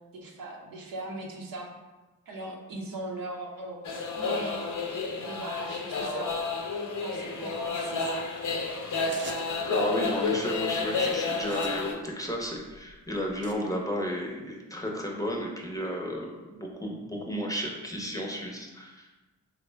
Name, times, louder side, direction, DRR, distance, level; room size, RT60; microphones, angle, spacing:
voice 1, 0.1-1.7 2.3-4.7 5.2-6.3 7.0-8.2, right 2 dB, 65° right, -1 dB, 0.7 m, -39 dB
sound 1, 3.8-11.9, left 4 dB, 55° left, 0.6 m, -30 dB
sound 2, 9.1-9.7 10.5-10.8 11.3-13.6, right 4 dB, 35° right, 0.5 m, -47 dB
voice 2, 9.7-19.1, equal, 10° left, -1 dB, 0.7 m, -33 dB
3.6 x 2.1 x 3.3 m, 1.1 s
supercardioid pair, 40°, 36 cm